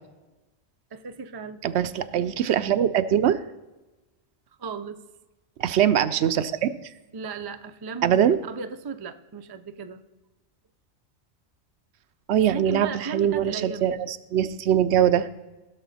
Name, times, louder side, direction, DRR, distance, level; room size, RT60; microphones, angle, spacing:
voice 1, 0.9-1.6 4.6-5.0 7.1-10.0 12.3-13.9, right 5 dB, 40° right, 9 dB, 0.3 m, -36 dB
voice 2, 1.6-3.4 5.6-6.7 8.0-8.4 12.3-15.3, right 9 dB, 75° right, 12 dB, 0.8 m, -22 dB
16.5 x 6.5 x 4.1 m, 1.1 s
omnidirectional pair, 1.2 m